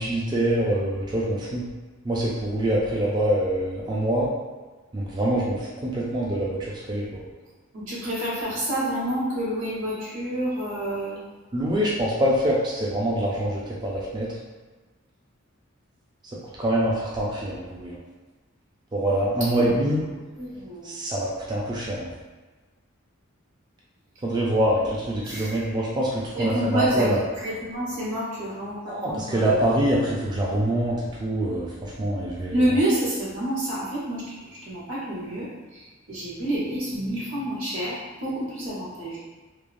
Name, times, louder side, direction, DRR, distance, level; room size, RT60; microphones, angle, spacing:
voice 1, 0.0-1.7 2.0-4.3 4.9-7.2 11.5-14.3 16.6-18.0 18.9-20.0 20.8-22.1 24.2-27.2 28.9-32.7, right 1 dB, 20° right, -5 dB, 0.3 m, -25 dB
voice 2, 7.7-11.2 19.5-19.8 20.4-20.9 25.2-25.6 26.3-27.1 27.4-29.6 32.5-39.2, right 1 dB, 80° right, -9 dB, 1.2 m, -28 dB
3.1 x 2.0 x 2.5 m, 1.3 s
head